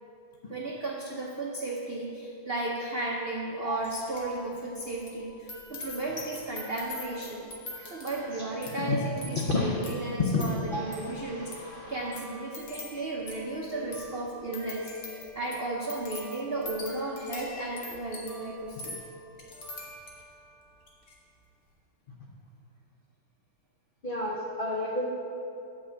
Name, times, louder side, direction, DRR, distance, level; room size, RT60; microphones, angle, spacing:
voice 1, 0.5-7.5 7.8-14.9 15.3-19.0, right 2 dB, 70° right, -3 dB, 0.5 m, -34 dB
sound 1, 3.8-4.4 4.6-20.4 20.8-21.1, left 2 dB, 50° left, 1.6 m, -44 dB
voice 2, 9.5-9.8 10.2-10.4 10.7-12.1 24.0-25.0, left 3 dB, 75° left, -3 dB, 0.5 m, -31 dB
8.7 x 5.0 x 7.1 m, 2.9 s
omnidirectional pair, 2.1 m